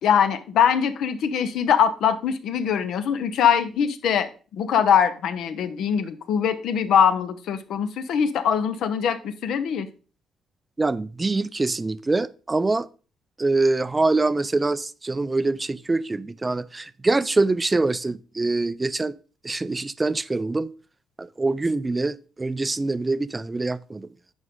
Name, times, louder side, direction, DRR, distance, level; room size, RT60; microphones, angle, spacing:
voice 1, 0.0-9.9, left 8 dB, 75° left, 0.8 m, -22 dB
voice 2, 10.8-12.9 13.4-19.2 19.4-20.7 21.2-24.1, right 3 dB, 20° right, 0.3 m, -24 dB
9.7 x 5.1 x 3.7 m
cardioid pair, 115°, 0 cm